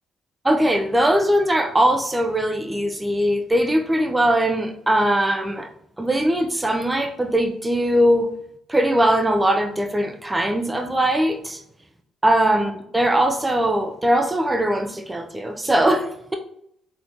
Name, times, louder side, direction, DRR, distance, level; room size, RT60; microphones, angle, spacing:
voice 1, 0.4-5.7 6.0-8.3 8.7-11.6 12.2-16.4, right 1 dB, 15° right, 5 dB, 0.6 m, -20 dB
4.2 x 3.4 x 2.9 m, 0.73 s
cardioid pair, 90°, 0 cm